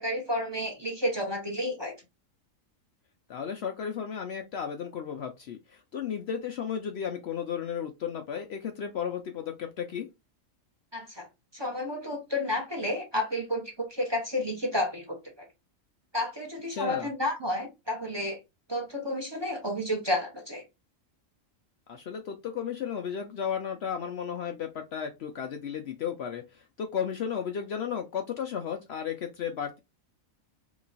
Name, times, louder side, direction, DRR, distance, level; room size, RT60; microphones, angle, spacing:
voice 1, 0.0-1.9 10.9-11.3 11.5-15.5 16.1-18.4 18.7-20.6, left 1 dB, 20° right, 0.8 m, -31 dB
voice 2, 3.3-10.1 16.7-17.1 21.9-29.8, left 7 dB, 65° left, 0.7 m, -34 dB
3.1 x 3.0 x 3.9 m
omnidirectional pair, 1.4 m